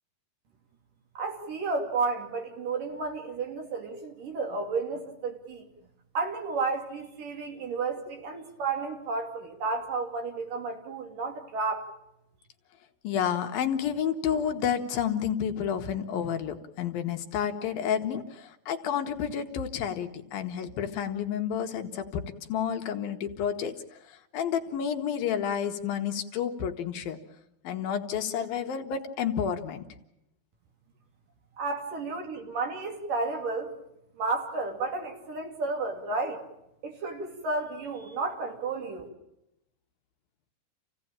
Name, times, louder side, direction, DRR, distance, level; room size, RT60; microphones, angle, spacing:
voice 1, 1.2-5.7 6.1-11.9 31.6-33.7 34.2-36.4 36.8-39.1, right 3 dB, 60° right, 3 dB, 4.3 m, -32 dB
voice 2, 13.0-23.7 24.1-27.2 27.6-29.9, left 8 dB, 70° left, 5 dB, 2.9 m, -30 dB
28.5 x 16.5 x 8.8 m, 0.86 s
omnidirectional pair, 4.5 m